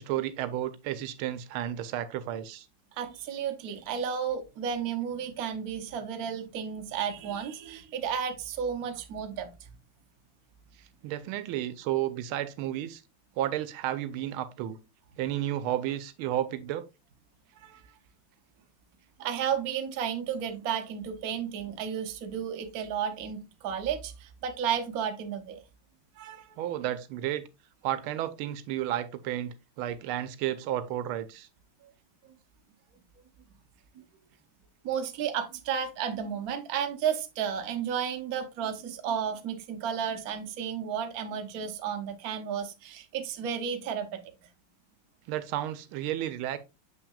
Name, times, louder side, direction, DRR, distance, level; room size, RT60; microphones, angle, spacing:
voice 1, 0.0-2.7 11.0-13.0 13.4-14.8 15.2-16.8 26.6-27.5 27.8-31.5 45.3-46.6, right 12 dB, 85° right, 1.5 m, -32 dB
voice 2, 3.0-9.7 17.6-17.8 19.2-25.6 26.2-26.5 32.2-32.3 33.9-34.0 34.8-44.2, right 8 dB, 55° right, 1.1 m, -33 dB
7.1 x 5.8 x 2.3 m
omnidirectional pair, 2.3 m